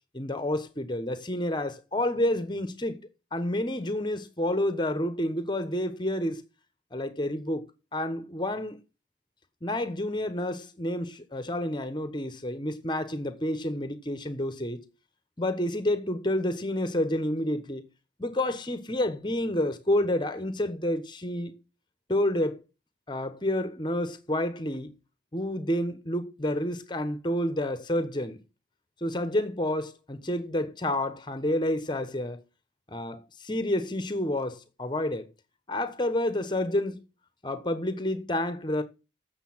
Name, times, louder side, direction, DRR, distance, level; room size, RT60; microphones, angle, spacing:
voice 1, 0.1-6.4 6.9-7.6 7.9-8.8 9.6-14.8 15.4-17.9 18.2-21.5 22.1-22.6 23.1-24.9 25.3-28.4 29.0-32.4 32.9-35.3 35.7-37.0 37.4-38.8, left 1 dB, 25° left, 1.1 m, -29 dB
8.3 x 6.9 x 7.3 m
head